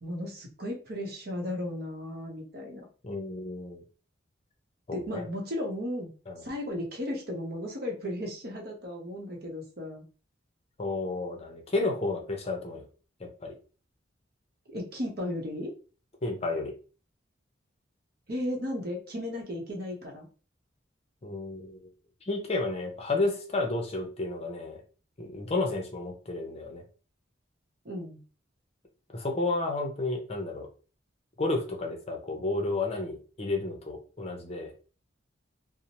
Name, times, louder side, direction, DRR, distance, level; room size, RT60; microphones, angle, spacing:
voice 1, 0.0-2.8 4.9-6.1 6.4-10.0 14.7-15.7 18.3-20.3 27.8-28.2, left 1 dB, 55° right, 1 dB, 0.8 m, -35 dB
voice 2, 3.0-3.8 4.9-5.2 6.3-6.4 10.8-12.8 13.2-13.5 16.2-16.7 21.2-21.9 22.2-24.8 25.2-26.8 29.1-30.7 31.4-34.7, left 2 dB, 35° left, 2 dB, 0.6 m, -31 dB
2.7 x 2.0 x 2.9 m, 0.36 s
head